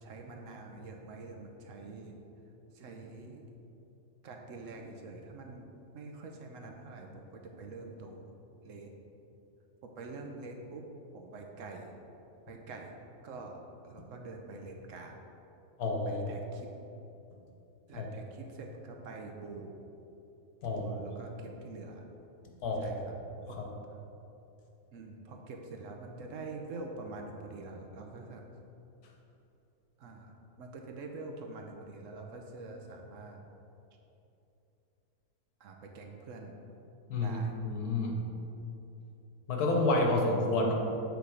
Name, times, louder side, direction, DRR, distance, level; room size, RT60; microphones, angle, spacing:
voice 1, 0.0-2.2 2.7-3.4 4.2-5.7 5.9-8.3 8.6-8.9 9.8-10.9 11.1-12.0 12.5-12.9 13.2-13.6 13.8-15.2 16.1-16.7 17.9-19.7 20.7-22.0 22.8-23.2 23.5-23.6 24.9-28.5 30.0-33.4 35.6-36.6 37.2-37.5, right 3 dB, 65° right, 2 dB, 0.9 m, -45 dB
voice 2, 15.8-16.2 17.9-18.1 20.6-20.9 22.6-23.0 23.6-23.7 37.1-38.2 39.5-40.7, left 2 dB, 90° left, 1 dB, 1.4 m, -29 dB
8.1 x 3.3 x 4.8 m, 2.9 s
omnidirectional pair, 1.6 m